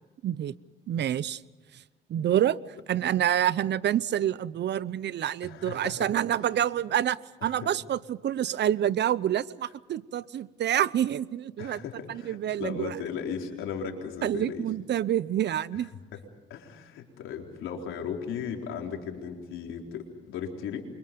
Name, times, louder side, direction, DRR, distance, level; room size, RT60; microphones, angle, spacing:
voice 1, 0.2-0.5 0.9-1.4 2.1-2.6 2.9-11.8 12.1-13.0 14.2-15.9, right 11 dB, 60° right, 19 dB, 0.8 m, -27 dB
voice 2, 5.4-6.1 6.4-6.5 7.4-7.7 8.5-8.6 11.6-14.7 15.7-16.2 16.5-20.9, left 7 dB, 90° left, 2 dB, 4.1 m, -37 dB
29.0 x 25.0 x 5.3 m, 1.2 s
cardioid pair, 90°, 20 cm